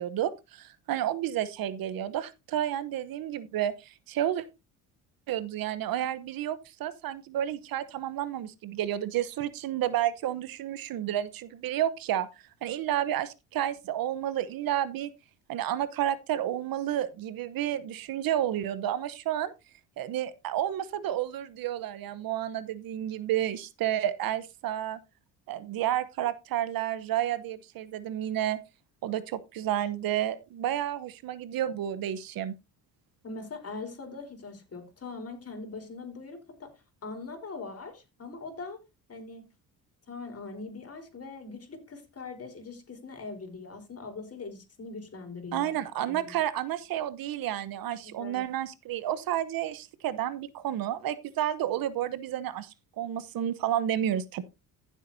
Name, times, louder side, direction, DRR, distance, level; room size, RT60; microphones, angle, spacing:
voice 1, 0.0-4.4 5.3-12.3 12.6-15.1 15.5-19.5 20.0-25.0 25.5-28.6 29.0-32.5 45.5-54.4, right 11 dB, 65° right, 1.0 m, -31 dB
voice 2, 33.2-36.7 37.0-38.8 39.1-39.5 40.1-45.8 46.1-46.4 48.0-48.4, left 3 dB, 40° left, 4.1 m, -41 dB
15.5 x 7.3 x 2.7 m
supercardioid pair, 75°, 38 cm